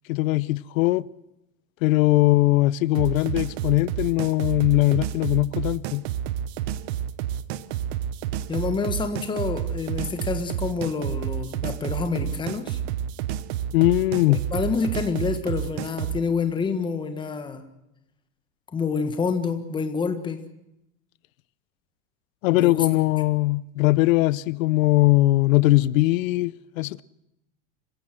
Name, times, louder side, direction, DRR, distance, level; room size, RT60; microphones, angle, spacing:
voice 1, 0.1-1.1 1.8-6.0 13.7-14.4 22.4-27.0, left 19 dB, 90° left, 0.8 m, -20 dB
sound 1, 2.9-16.2, right 10 dB, 55° right, 1.0 m, -30 dB
voice 2, 8.5-12.8 14.5-17.6 18.7-20.4 22.6-22.8, left 5 dB, 10° left, 1.6 m, -27 dB
26.0 x 16.0 x 7.8 m
supercardioid pair, 170°, 39 cm